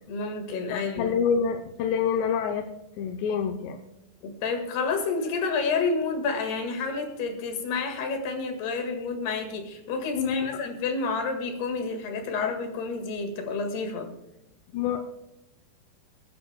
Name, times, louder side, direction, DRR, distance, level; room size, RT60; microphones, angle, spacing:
voice 1, 0.1-1.1 4.2-14.1, left 4 dB, 70° left, 4 dB, 3.8 m, -29 dB
voice 2, 0.7-2.7 3.0-3.8 10.2-10.5 14.7-15.0, left 7 dB, 85° left, 4 dB, 3.0 m, -27 dB
28.0 x 10.5 x 2.3 m, 0.91 s
omnidirectional pair, 4.8 m